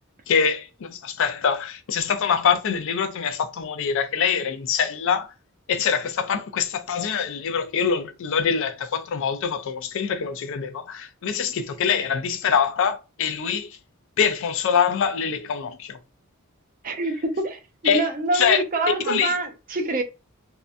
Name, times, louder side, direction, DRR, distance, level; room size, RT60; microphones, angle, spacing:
voice 1, 0.3-5.3 5.7-13.7 14.2-16.0 17.8-18.0 18.3-18.6 19.0-19.3, left 7 dB, 65° left, 0.4 m, -24 dB
voice 2, 16.8-20.0, right 2 dB, 40° right, 0.5 m, -26 dB
2.6 x 2.2 x 2.4 m
head